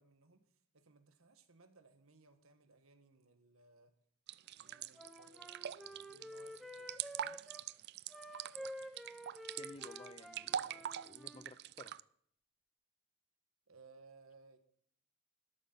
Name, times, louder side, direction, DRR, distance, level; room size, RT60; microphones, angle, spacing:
voice 1, 0.0-3.9 4.6-7.5 13.7-14.6, right 3 dB, 80° right, 1.7 m, -64 dB
sound 1, 4.3-12.0, right 10 dB, 50° right, 0.4 m, -43 dB
Wind instrument woodwind instrument, 4.7-7.6 8.1-11.5, equal, ahead, 1.0 m, -50 dB
voice 2, 9.6-11.9, left 2 dB, 25° left, 0.7 m, -55 dB
13.5 x 12.0 x 4.1 m
head